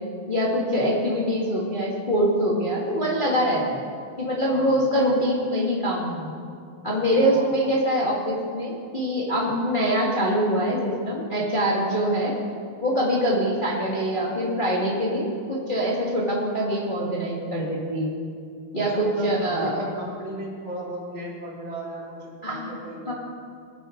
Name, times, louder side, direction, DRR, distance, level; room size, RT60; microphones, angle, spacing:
voice 1, 0.3-3.8 4.2-6.4 6.8-12.3 12.8-18.1 18.7-19.7 22.4-22.7 23.1-23.2, equal, 35° left, -5 dB, 0.8 m, -24 dB
voice 2, 6.9-7.5 18.7-23.1, right 1 dB, 35° right, -8 dB, 4.6 m, -36 dB
23.0 x 10.0 x 3.9 m, 2.3 s
omnidirectional pair, 4.3 m